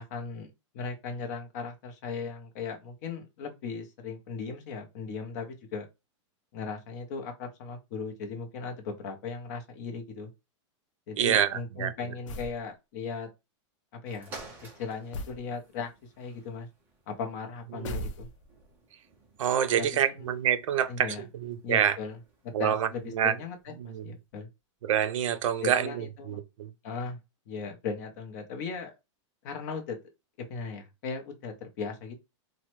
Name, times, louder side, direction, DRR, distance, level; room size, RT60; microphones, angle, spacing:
voice 1, 0.0-5.9 6.5-10.3 11.1-13.3 13.9-14.3 14.6-15.9 16.2-16.7 17.1-18.3 19.8-20.3 20.9-21.2 21.6-22.2 22.6-24.5 25.6-26.4 26.8-27.2 27.5-28.9 29.4-30.0 30.4-32.1, left 5 dB, 35° left, 0.6 m, -37 dB
voice 2, 11.2-11.9 17.7-18.1 19.4-22.0 22.5-22.9 23.1-23.3 23.8-24.1 24.8-26.7, right 9 dB, 90° right, 0.5 m, -27 dB
sound 1, 12.3-12.6 15.1-15.5 17.8-18.6, left 1 dB, 80° left, 0.5 m, -37 dB
sound 2, 14.0-23.6 24.3-24.4, right 2 dB, 10° right, 0.5 m, -53 dB
3.0 x 2.1 x 3.0 m
supercardioid pair, 175°, 16 cm